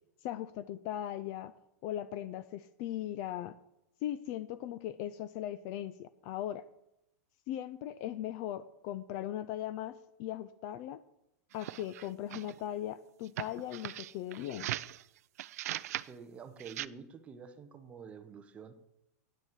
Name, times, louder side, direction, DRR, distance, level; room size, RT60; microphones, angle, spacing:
voice 1, 0.2-1.5 1.8-3.6 4.0-6.7 7.5-11.0 11.5-14.7, left 12 dB, 30° left, 15 dB, 0.3 m, -39 dB
sound 1, 11.5-12.6 13.3-15.0 15.4-16.1 16.6-16.9, right 14 dB, 65° right, 0.4 m, -39 dB
voice 2, 16.1-18.7, right 6 dB, 15° right, 8 dB, 0.7 m, -48 dB
8.9 x 7.2 x 8.1 m, 0.83 s
supercardioid pair, 170°, 9 cm